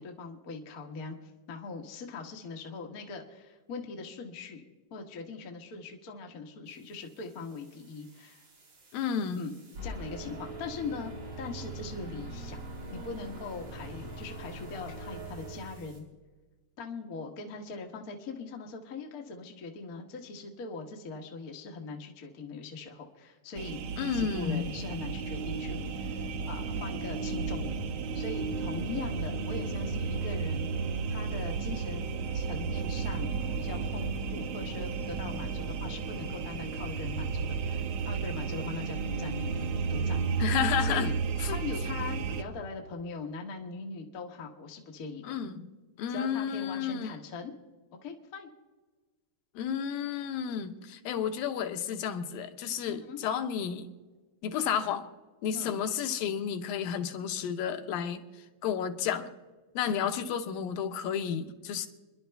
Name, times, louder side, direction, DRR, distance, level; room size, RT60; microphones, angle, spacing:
voice 1, 0.0-4.6 4.9-8.4 9.3-9.5 9.8-12.6 12.9-16.1 16.8-27.8 28.1-30.7 31.1-40.3 40.8-41.1 41.5-45.4 46.1-47.5 48.0-48.5 52.9-53.2 55.5-55.7, left 4 dB, 50° left, 1 dB, 1.0 m, -41 dB
sound 1, 7.4-16.0, right 2 dB, 45° right, 3.7 m, -43 dB
voice 2, 8.9-9.4 24.0-24.7 40.4-41.1 41.4-41.6 45.2-45.7 46.0-47.1 49.6-53.9 54.4-55.1 55.4-58.3 58.6-59.3 59.8-61.9, left 8 dB, 85° left, 7 dB, 2.7 m, -31 dB
sound 2, 23.6-42.4, right 5 dB, 80° right, 1.4 m, -33 dB
29.0 x 11.0 x 3.4 m, 1.3 s
omnidirectional pair, 3.9 m